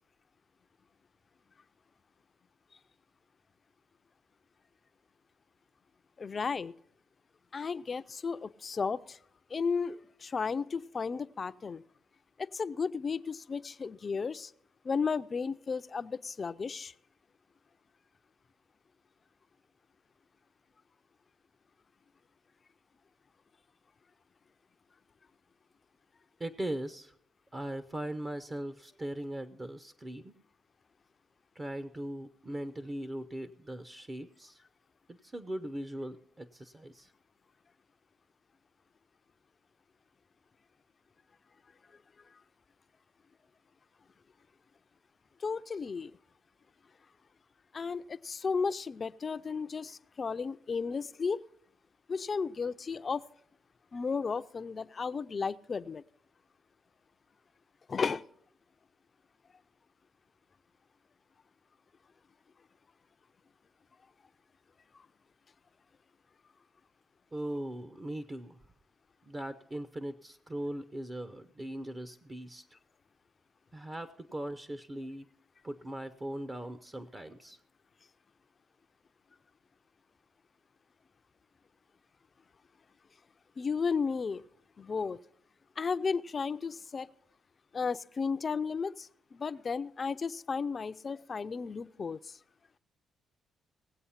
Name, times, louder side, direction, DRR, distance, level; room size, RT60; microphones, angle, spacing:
voice 1, 6.2-6.7 7.5-9.2 9.5-11.8 12.4-14.5 14.8-16.9 45.4-46.1 47.7-51.4 52.1-53.2 53.9-56.0 57.9-58.3 64.9-65.0 83.6-84.4 84.8-85.2 85.8-87.1 87.7-92.4, left 5 dB, 40° left, 15 dB, 0.4 m, -34 dB
voice 2, 26.4-27.1 27.5-30.3 31.5-34.6 35.1-37.1 67.3-68.6 69.3-72.6 73.7-75.3 75.6-77.6, right 1 dB, 25° right, 11 dB, 0.6 m, -39 dB
18.0 x 7.9 x 5.7 m, 0.68 s
cardioid pair, 90°, 0 cm